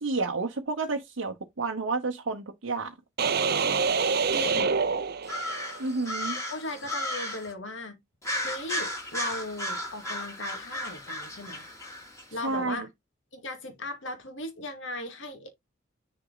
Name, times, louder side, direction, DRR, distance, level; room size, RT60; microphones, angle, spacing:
voice 1, 0.0-2.9 5.8-6.4 12.4-12.9, right 3 dB, 80° right, 0.9 m, -30 dB
sound 1, 3.2-5.8, right 5 dB, 50° right, 0.7 m, -26 dB
voice 2, 4.3-4.8 6.4-8.0 8.4-11.6 12.3-12.9 13.3-15.5, left 2 dB, 70° left, 2.2 m, -37 dB
sound 2, 5.2-7.5 8.2-12.2, left 1 dB, 15° left, 2.3 m, -34 dB
6.2 x 4.3 x 3.9 m
head